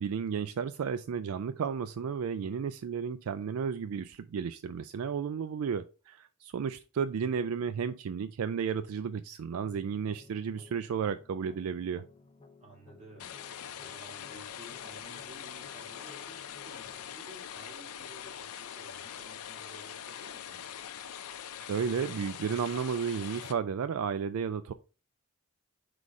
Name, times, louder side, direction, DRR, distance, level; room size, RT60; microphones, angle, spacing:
voice 1, 0.0-12.1 21.7-24.7, right 6 dB, 75° right, 0.3 m, -33 dB
sound 1, 9.6-18.6, left 4 dB, 25° left, 0.6 m, -58 dB
voice 2, 12.6-20.7, right 1 dB, 30° right, 2.1 m, -54 dB
sound 2, 13.2-23.5, left 9 dB, 90° left, 0.6 m, -43 dB
4.9 x 4.1 x 4.6 m
head